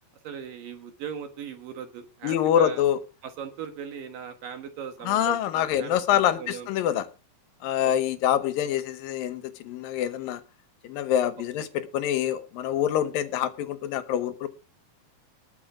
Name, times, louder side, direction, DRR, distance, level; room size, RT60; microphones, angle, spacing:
voice 1, 0.2-2.8 3.2-7.0 11.6-11.7, right 7 dB, 65° right, 7 dB, 2.9 m, -39 dB
voice 2, 2.2-3.0 5.0-7.1 7.6-10.4 10.8-14.5, left 10 dB, 70° left, 12 dB, 2.5 m, -25 dB
20.0 x 7.0 x 4.9 m, 0.33 s
omnidirectional pair, 4.6 m